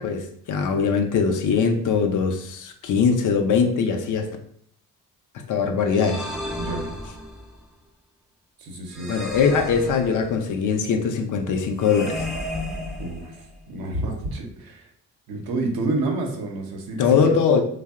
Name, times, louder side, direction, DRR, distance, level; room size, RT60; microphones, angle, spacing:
voice 1, 0.0-4.3 5.3-6.3 9.1-12.2 17.0-17.6, left 6 dB, 50° left, 5 dB, 0.5 m, -21 dB
sound 1, 5.9-7.6 8.9-10.5 11.8-13.6, left 1 dB, ahead, 0.5 m, -33 dB
voice 2, 8.6-9.1 13.0-13.3 13.7-14.9 15.3-17.1, right 2 dB, 60° right, 1 dB, 0.7 m, -29 dB
2.6 x 2.0 x 2.3 m, 0.64 s
hypercardioid pair, 50°, 40 cm